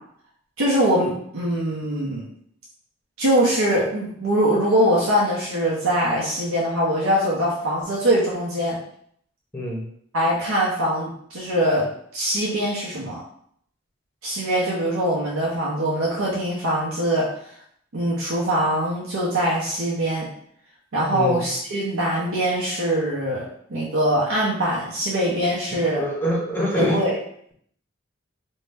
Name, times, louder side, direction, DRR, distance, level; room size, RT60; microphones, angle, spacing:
voice 1, 0.6-2.2 3.2-8.8 10.1-11.9 12.1-13.2 14.2-17.3 17.9-20.3 20.9-26.0 26.8-27.2, right 1 dB, 85° right, -6 dB, 0.7 m, -22 dB
voice 2, 26.0-27.0, left 1 dB, 10° left, -3 dB, 0.6 m, -24 dB
2.7 x 2.1 x 3.3 m, 0.67 s
head